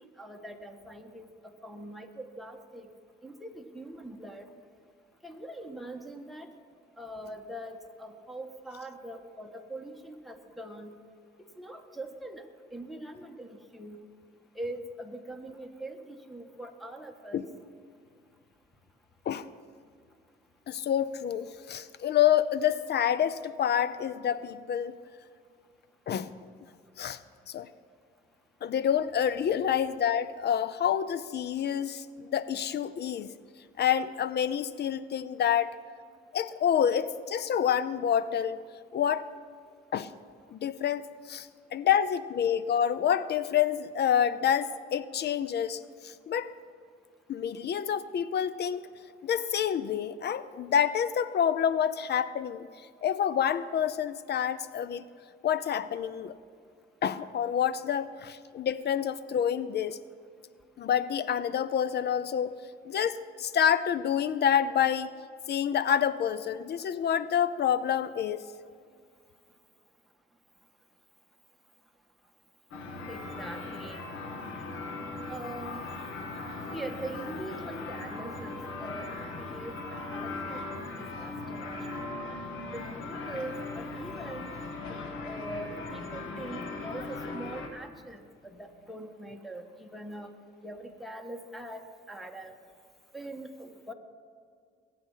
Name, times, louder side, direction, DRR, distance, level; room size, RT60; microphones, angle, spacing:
voice 1, 0.0-2.9 3.2-4.5 5.2-6.5 7.0-10.9 11.4-14.0 14.5-17.5 73.1-74.0 75.3-75.9 76.7-82.3 82.7-84.5 84.9-90.3 90.6-92.5 93.1-93.9, right 1 dB, ahead, 2 dB, 1.5 m, -42 dB
voice 2, 20.7-24.9 26.1-26.3 27.0-27.2 27.5-27.7 28.6-33.3 33.8-35.7 36.3-38.6 38.9-39.3 39.9-40.1 40.5-46.5 47.3-48.8 49.2-52.7 53.0-55.0 55.4-56.4 57.0-60.0 60.8-62.5 62.9-65.1 65.5-68.5, left 9 dB, 55° left, 16 dB, 0.6 m, -28 dB
sound 1, 72.7-87.7, left 3 dB, 85° left, 1.7 m, -39 dB
20.5 x 8.6 x 5.7 m, 2.2 s
cardioid pair, 90°, 20 cm